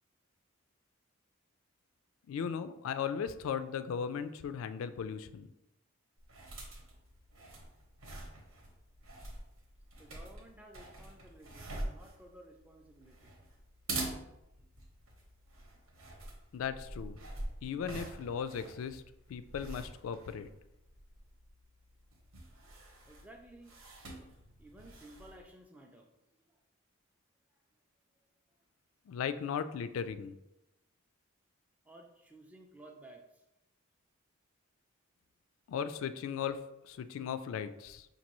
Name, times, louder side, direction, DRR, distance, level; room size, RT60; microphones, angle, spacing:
voice 1, 2.3-5.5 16.5-17.2 17.6-19.0 19.3-20.5 29.1-30.4 35.7-38.1, left 7 dB, 75° left, 12 dB, 0.3 m, -37 dB
sound 1, 6.2-25.5, right 2 dB, 85° right, 1.0 m, -46 dB
voice 2, 10.0-13.3 23.1-23.8 24.6-26.1 26.5-26.6 27.5-27.6 31.8-33.4, right 1 dB, 5° right, 2 dB, 0.3 m, -55 dB
5.2 x 2.6 x 3.0 m, 0.91 s
head